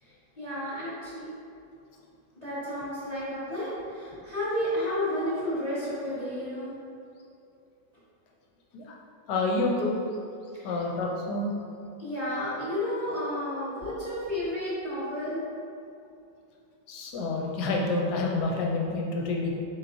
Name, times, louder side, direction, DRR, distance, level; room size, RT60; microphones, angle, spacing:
voice 1, 0.0-1.3 2.3-6.7 10.5-10.8 12.0-15.5 19.1-19.3, left 1 dB, 25° left, -12 dB, 1.1 m, -32 dB
voice 2, 9.3-10.0 10.6-11.5 16.9-19.5, left 2 dB, 70° left, -1 dB, 1.1 m, -28 dB
4.6 x 4.3 x 2.6 m, 2.5 s
omnidirectional pair, 2.0 m